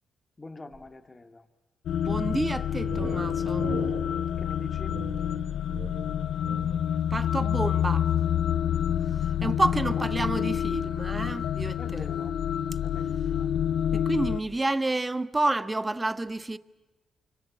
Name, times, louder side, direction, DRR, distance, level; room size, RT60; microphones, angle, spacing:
voice 1, 0.4-1.4 4.4-5.0 9.4-9.5 11.8-12.4 12.8-13.5, left 2 dB, 30° left, 2.6 m, -44 dB
sound 1, 1.9-14.4, left 9 dB, 75° left, 0.8 m, -28 dB
voice 2, 2.0-3.8 7.1-8.1 9.4-12.1 13.9-16.6, right 2 dB, 20° right, 1.3 m, -29 dB
sound 2, 2.3-7.0, right 4 dB, 75° right, 4.9 m, -40 dB
29.0 x 25.5 x 7.6 m
supercardioid pair, 60°, 0 cm